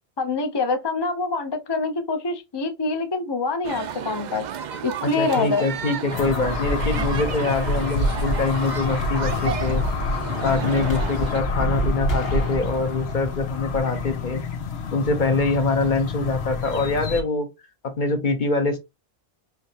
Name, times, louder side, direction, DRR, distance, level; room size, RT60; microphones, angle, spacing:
voice 1, 0.2-4.4 4.8-5.7, left 3 dB, 30° left, 0.5 m, -25 dB
sound 1, 3.6-11.4, right 8 dB, 55° right, 0.5 m, -33 dB
voice 2, 5.0-9.8 10.4-14.4 14.9-17.5 17.8-18.8, left 3 dB, 50° left, 1.0 m, -24 dB
sound 2, 6.1-17.2, left 2 dB, 85° left, 1.0 m, -27 dB
sound 3, 8.6-14.8, left 4 dB, 65° left, 1.6 m, -35 dB
4.9 x 2.8 x 2.7 m
omnidirectional pair, 1.1 m